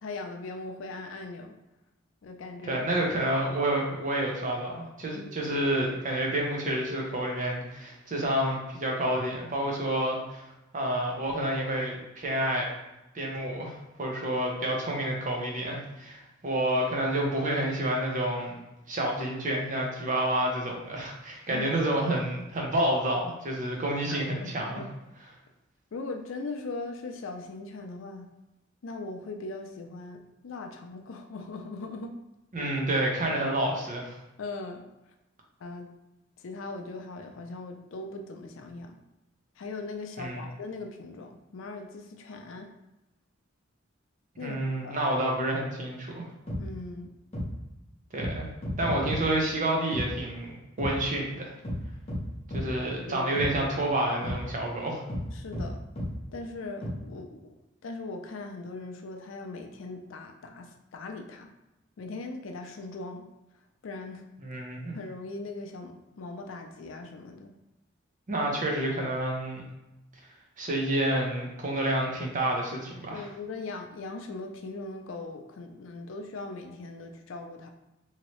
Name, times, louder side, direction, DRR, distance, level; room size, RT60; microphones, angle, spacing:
voice 1, 0.0-1.5 2.2-2.9 5.1-5.4 21.5-21.8 24.1-24.9 25.9-28.3 28.8-30.2 30.4-32.1 32.6-32.7 34.4-34.8 35.6-35.9 36.4-39.0 39.6-42.7 44.4-45.1 46.6-47.1 52.8-53.4 55.3-55.8 56.3-61.5 62.0-63.2 63.8-64.2 64.9-67.5 73.1-77.7, left 3 dB, 70° left, 4 dB, 0.4 m, -40 dB
voice 2, 2.7-10.4 10.7-12.7 13.1-18.5 18.9-24.8 32.5-34.1 40.2-40.4 44.4-46.2 48.1-48.5 48.8-51.5 52.5-55.0 64.4-65.0 68.3-69.6 70.6-73.3, right 1 dB, 40° right, 0 dB, 0.7 m, -29 dB
sound 1, 46.5-46.6 47.3-47.5 48.2-48.3 48.6-49.2 49.9-50.1 50.8-50.9 51.6-51.8 52.1-52.2 52.5-52.6 53.4-53.5 54.2-54.4 55.1-55.2 55.5-55.7 56.0-56.1 56.8-56.9, equal, 30° left, 0.9 m, -32 dB
3.0 x 2.8 x 3.0 m, 0.96 s
head